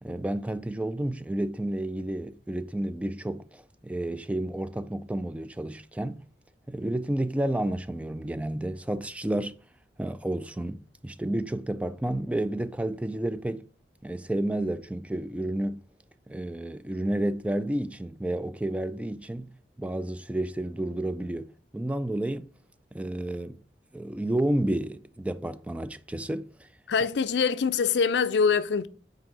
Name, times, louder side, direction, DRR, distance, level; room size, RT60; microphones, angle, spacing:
voice 1, 0.0-6.2 6.7-9.6 10.0-13.6 14.0-15.8 16.3-19.5 19.8-21.5 21.7-22.5 22.9-23.6 23.9-26.7, right 1 dB, 10° right, 0.3 m, -31 dB
voice 2, 26.9-28.9, left 5 dB, 70° left, 0.5 m, -24 dB
6.1 x 4.6 x 4.8 m
head